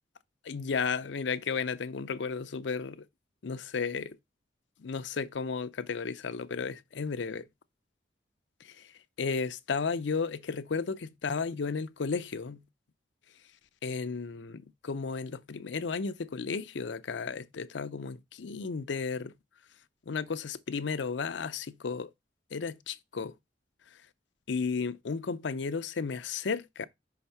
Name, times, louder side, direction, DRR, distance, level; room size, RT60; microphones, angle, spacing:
voice 1, 0.5-3.0 3.4-4.2 4.8-7.5 8.6-8.9 9.2-12.6 13.8-19.3 20.1-22.1 22.5-23.3 24.5-26.9, left 5 dB, 70° left, 0.5 m, -33 dB
5.7 x 3.5 x 5.6 m
head